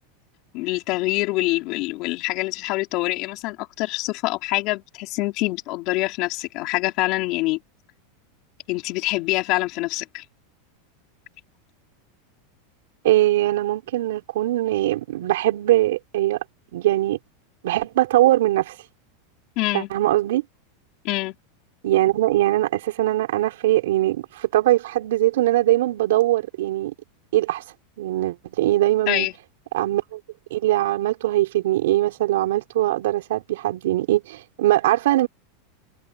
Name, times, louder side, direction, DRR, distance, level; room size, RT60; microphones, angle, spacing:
voice 1, 0.5-7.6 8.7-10.2 19.6-19.9 21.0-21.3 29.1-29.3, left 21 dB, 40° left, 4.8 m, -25 dB
voice 2, 13.0-16.4 16.7-17.2 17.6-18.7 19.7-20.4 21.8-26.9 27.3-27.6 28.0-29.3 29.7-30.2 30.5-35.3, right 15 dB, 75° right, 4.9 m, -21 dB
supercardioid pair, 170°, 0 cm